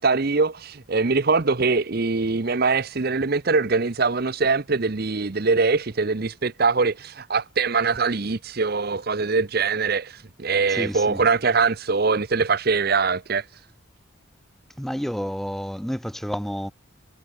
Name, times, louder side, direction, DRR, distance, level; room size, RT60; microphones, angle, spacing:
voice 1, 0.0-13.5, right 4 dB, 45° right, 0.8 m, -22 dB
voice 2, 10.7-11.2 14.8-16.7, equal, ahead, 1.5 m, -30 dB
head